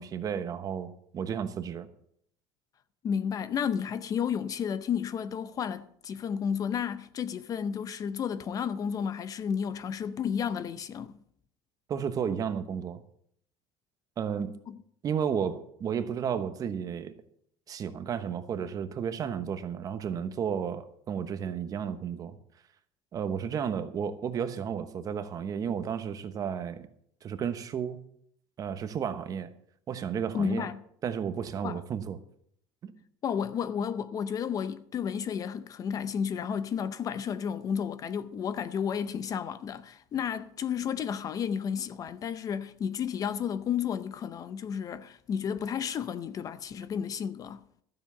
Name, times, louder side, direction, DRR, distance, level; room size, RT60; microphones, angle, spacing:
voice 1, 0.0-1.9 11.9-13.0 14.2-14.5 15.0-17.1 17.7-22.4 23.1-26.9 27.2-28.0 28.6-29.5 29.9-30.7 31.0-32.2 32.8-32.9, right 7 dB, 35° right, 1.1 m, -32 dB
voice 2, 3.0-11.2 14.7-14.8 30.3-30.8 31.6-31.8 33.2-47.6, left 7 dB, 35° left, 0.6 m, -32 dB
13.0 x 7.5 x 6.9 m
cardioid pair, 135°, 11 cm